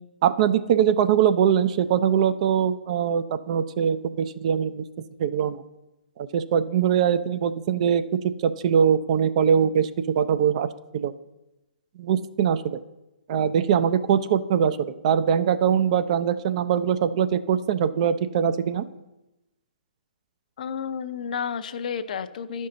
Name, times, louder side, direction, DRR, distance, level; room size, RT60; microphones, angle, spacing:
voice 1, 0.2-4.8 5.2-5.6 6.2-8.0 8.4-9.9 10.2-10.7 10.9-11.1 12.0-12.8 13.3-18.8, right 8 dB, 40° right, 12 dB, 0.4 m, -22 dB
voice 2, 20.6-22.7, left 7 dB, 55° left, 11 dB, 0.5 m, -31 dB
11.0 x 5.4 x 3.8 m, 0.97 s
figure-of-eight pair, 130°, 5 cm